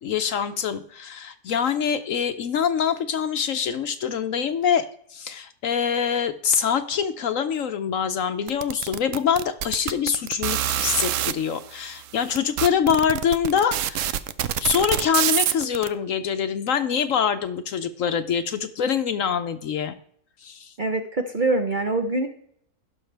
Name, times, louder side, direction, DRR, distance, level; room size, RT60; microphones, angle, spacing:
voice 1, 0.0-20.0 20.4-20.7, left 7 dB, 65° left, 10 dB, 0.9 m, -25 dB
sound 1, 8.5-11.3 12.0-12.1 12.3-15.9, right 11 dB, 70° right, 0.8 m, -25 dB
voice 2, 20.8-22.3, right 2 dB, 40° right, 5 dB, 0.8 m, -24 dB
16.0 x 6.4 x 3.4 m, 0.66 s
omnidirectional pair, 1.7 m